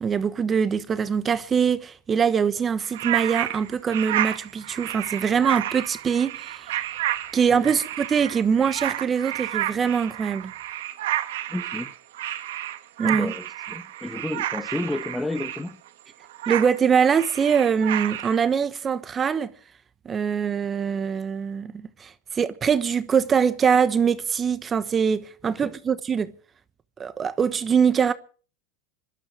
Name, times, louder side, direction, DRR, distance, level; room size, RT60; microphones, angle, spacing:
voice 1, 0.0-6.7 7.3-10.5 13.0-13.3 16.5-19.5 20.0-26.3 27.0-28.1, right 7 dB, 25° right, 1.1 m, -23 dB
sound 1, 2.8-15.9 16.3-18.4, right 13 dB, 80° right, 1.7 m, -31 dB
voice 2, 11.5-11.9 13.0-15.8 25.4-25.7, left 2 dB, 10° left, 1.3 m, -32 dB
23.0 x 12.5 x 5.0 m
hypercardioid pair, 110°, 0 cm